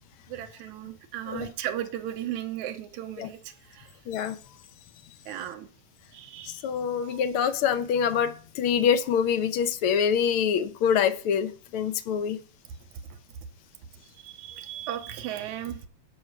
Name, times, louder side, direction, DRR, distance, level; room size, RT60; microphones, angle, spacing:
voice 1, 0.3-3.9 5.3-5.7 6.1-7.2 14.2-15.8, right 11 dB, 90° right, 6 dB, 2.3 m, -36 dB
voice 2, 4.1-4.4 6.6-12.4, left 7 dB, 75° left, 9 dB, 1.2 m, -25 dB
11.0 x 4.8 x 6.6 m, 0.42 s
omnidirectional pair, 3.4 m